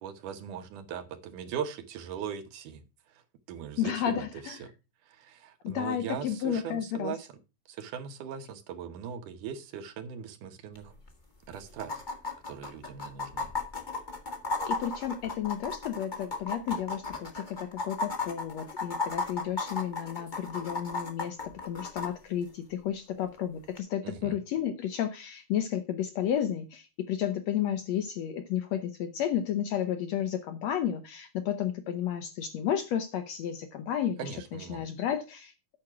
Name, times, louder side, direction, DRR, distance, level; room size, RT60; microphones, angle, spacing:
voice 1, 0.0-2.8 3.5-4.7 5.1-7.3 7.7-10.9 11.5-11.9 12.5-13.5 24.0-24.4 34.2-34.9, right 8 dB, 70° right, 2.5 m, -39 dB
voice 2, 3.8-4.6 5.6-7.2 14.6-35.5, left 9 dB, 70° left, 1.7 m, -32 dB
sound 1, 10.7-10.8 11.1-11.2 11.8-22.1 23.8-23.9, left 3 dB, 35° left, 0.7 m, -34 dB
8.8 x 6.1 x 5.9 m
omnidirectional pair, 3.9 m